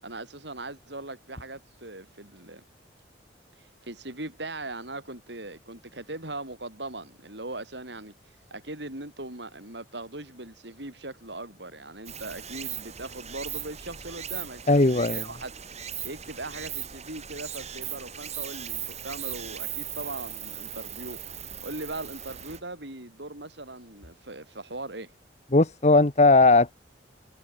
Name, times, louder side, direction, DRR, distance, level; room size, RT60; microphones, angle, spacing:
voice 1, 0.0-2.6 3.6-8.1 8.5-15.5 16.0-25.1, right 2 dB, 65° right, 6.5 m, -39 dB
Stream, 12.0-22.6, right 10 dB, 35° right, 7.2 m, -38 dB
voice 2, 14.7-15.2 25.5-26.7, left 2 dB, 40° left, 1.1 m, -18 dB
head